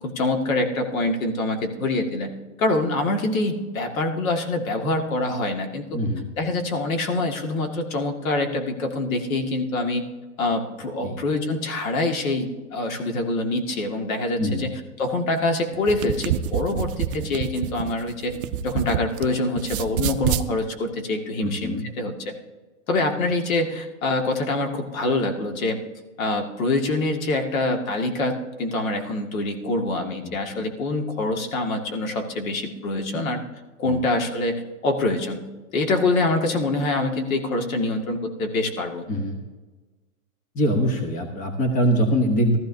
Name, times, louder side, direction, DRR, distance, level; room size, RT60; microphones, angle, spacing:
voice 1, 0.0-2.3 2.6-6.0 6.4-10.0 10.4-14.7 15.0-18.3 18.6-22.3 22.9-25.8 26.2-33.4 33.8-35.5 35.7-39.0, left 2 dB, 75° left, 4 dB, 2.1 m, -25 dB
voice 2, 5.9-6.3 11.0-11.2 14.4-14.7 21.4-21.8 30.2-30.7 33.8-34.0 39.1-39.4 40.5-42.6, equal, 20° left, 4 dB, 1.1 m, -23 dB
sound 1, 15.7-19.3 19.6-20.5, right 10 dB, 40° right, 0.6 m, -27 dB
16.0 x 13.5 x 2.7 m, 1.2 s
supercardioid pair, 160°, 42 cm